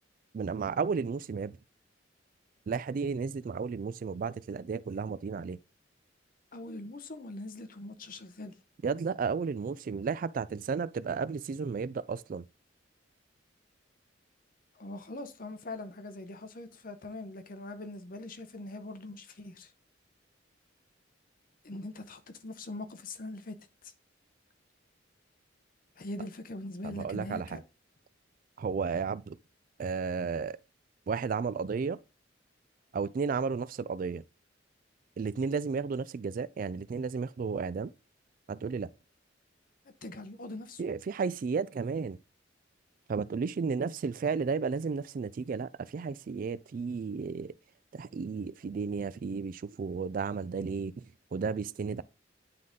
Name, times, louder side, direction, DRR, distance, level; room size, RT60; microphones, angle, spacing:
voice 1, 0.3-1.5 2.7-5.6 8.8-12.4 26.8-27.6 28.6-29.4 29.8-30.6 31.1-32.0 32.9-34.2 35.2-37.9 38.5-38.9 40.8-42.2 43.1-47.5 47.9-50.9 51.3-52.0, right 5 dB, 45° right, 0.3 m, -33 dB
voice 2, 6.5-8.5 14.7-19.7 21.6-23.9 26.0-27.6 39.8-40.8, left 2 dB, 45° left, 0.8 m, -42 dB
9.5 x 3.9 x 3.6 m
head